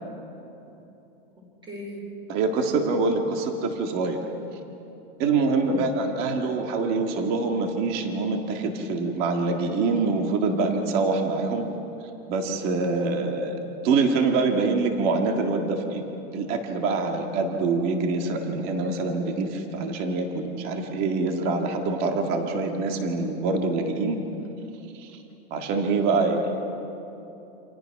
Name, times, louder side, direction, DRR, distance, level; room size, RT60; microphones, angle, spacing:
voice 1, 1.7-2.0 5.7-5.9 26.3-26.5, right 1 dB, 15° right, 0 dB, 4.4 m, -38 dB
voice 2, 2.3-4.2 5.2-11.7 12.3-16.0 16.3-24.2 24.9-25.1 25.5-26.4, right 3 dB, 30° right, 4 dB, 1.9 m, -25 dB
28.5 x 27.0 x 5.9 m, 3.0 s
supercardioid pair, 180°, 30 cm